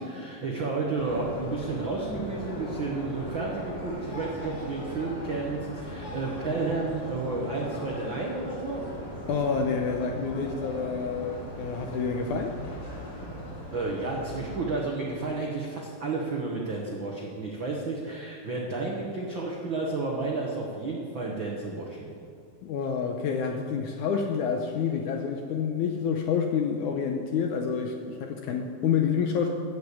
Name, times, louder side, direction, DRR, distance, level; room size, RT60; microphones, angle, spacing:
voice 1, 0.0-8.8 13.7-22.1, right 3 dB, 75° right, -1 dB, 1.1 m, -31 dB
sound 1, 1.0-14.6, equal, 35° left, 4.2 m, -39 dB
voice 2, 9.3-12.6 22.6-29.5, left 6 dB, 75° left, 3 dB, 1.9 m, -28 dB
14.0 x 7.0 x 8.4 m, 2.3 s
omnidirectional pair, 4.3 m